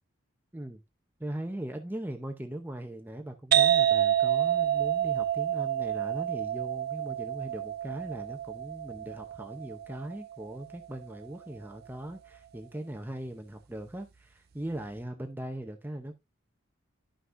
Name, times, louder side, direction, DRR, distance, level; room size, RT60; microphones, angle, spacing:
voice 1, 1.2-16.2, right 1 dB, 10° right, 0.6 m, -39 dB
sound 1, 3.5-10.9, right 11 dB, 50° right, 0.4 m, -28 dB
11.0 x 5.8 x 2.5 m
head